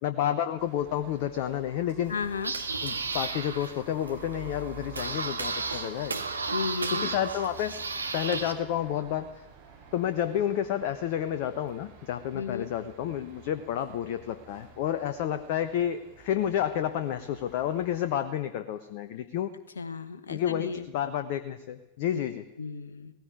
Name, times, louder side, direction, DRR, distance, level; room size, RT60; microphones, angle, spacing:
voice 1, 0.0-2.1 2.8-6.2 7.0-7.7 8.1-9.4 9.9-19.5 20.3-22.4, left 10 dB, 50° left, 10 dB, 1.0 m, -30 dB
sound 1, 0.6-18.2, right 5 dB, 55° right, 7.6 m, -50 dB
sound 2, 2.0-8.5, right 4 dB, 75° right, 1.7 m, -34 dB
voice 2, 2.1-2.5 6.5-7.1 12.3-12.7 19.7-20.9 22.6-23.1, left 5 dB, 70° left, 11 dB, 1.3 m, -34 dB
18.0 x 15.5 x 9.6 m, 1.0 s
figure-of-eight pair, 90°, 0 cm